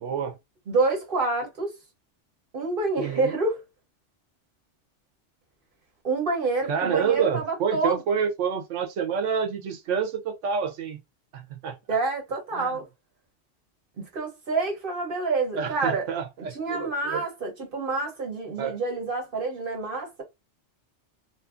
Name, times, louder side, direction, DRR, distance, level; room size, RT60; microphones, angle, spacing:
voice 1, 0.0-0.4 3.0-3.3 6.7-11.0 11.3-11.8 12.5-12.8 15.6-17.2 18.6-18.8, right 7 dB, 90° right, 1.0 m, -28 dB
voice 2, 0.7-1.7 2.5-3.6 6.0-8.0 11.9-12.8 14.0-16.1 16.5-20.2, right 3 dB, 50° right, 1.0 m, -27 dB
2.7 x 2.5 x 2.4 m
omnidirectional pair, 1.2 m